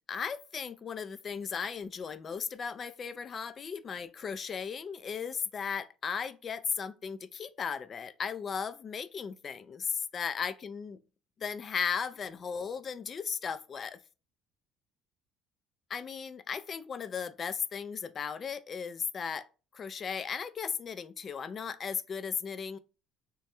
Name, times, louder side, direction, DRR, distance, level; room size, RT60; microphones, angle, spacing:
voice 1, 0.1-11.0 11.4-14.0 15.9-19.5 19.7-22.8, left 6 dB, 35° left, 0.4 m, -36 dB
3.2 x 2.2 x 4.2 m
cardioid pair, 105°, 0 cm